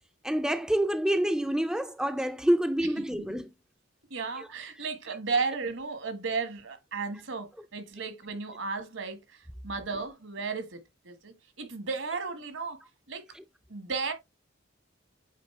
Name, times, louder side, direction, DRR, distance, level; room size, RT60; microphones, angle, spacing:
voice 1, 0.2-3.5 4.4-4.5 13.3-13.4, right 1 dB, 5° right, 0.4 m, -27 dB
voice 2, 4.1-10.8 11.0-12.8 13.1-13.2 13.7-14.1, right 4 dB, 70° right, 1.4 m, -34 dB
8.3 x 3.9 x 3.1 m
head